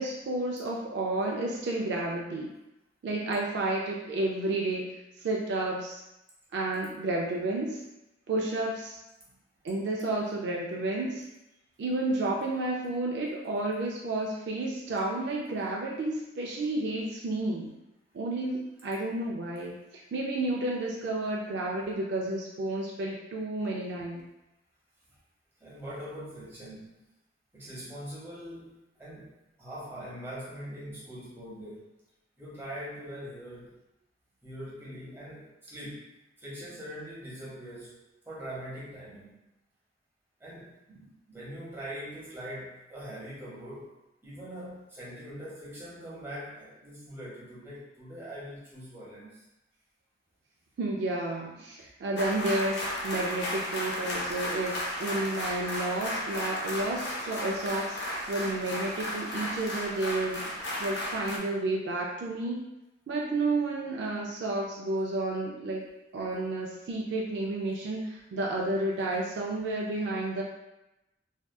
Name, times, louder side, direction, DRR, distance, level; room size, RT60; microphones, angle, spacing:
voice 1, 0.0-2.5 3.0-4.9 5.2-6.0 6.5-7.8 8.3-9.0 9.6-11.2 11.8-17.7 18.1-19.8 20.1-24.2 50.8-60.5 60.8-62.7 63.1-65.9 66.1-70.4, right 2 dB, 60° right, -1 dB, 0.3 m, -31 dB
voice 2, 25.6-27.0 27.5-31.9 32.4-33.7 34.4-36.1 36.4-39.3 40.4-49.4 51.5-51.7, equal, 15° right, -8 dB, 0.8 m, -42 dB
sound 1, 52.2-61.4, equal, 65° left, 0.5 m, -34 dB
2.6 x 2.3 x 2.2 m, 0.92 s
head